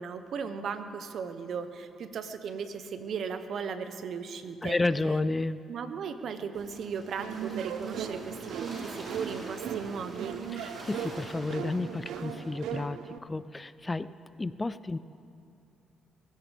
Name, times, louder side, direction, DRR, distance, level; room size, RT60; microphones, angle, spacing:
voice 1, 0.0-4.8 5.7-10.4, right 6 dB, 65° right, 9 dB, 0.9 m, -37 dB
voice 2, 4.6-5.6 10.5-14.1 14.4-15.0, left 2 dB, 20° left, 15 dB, 0.4 m, -31 dB
sound 1, 6.5-12.6, right 1 dB, 45° right, 4.5 m, -46 dB
sound 2, 7.2-13.2, right 8 dB, 90° right, 0.6 m, -38 dB
21.5 x 15.5 x 3.5 m, 2.5 s
cardioid pair, 90°, 0 cm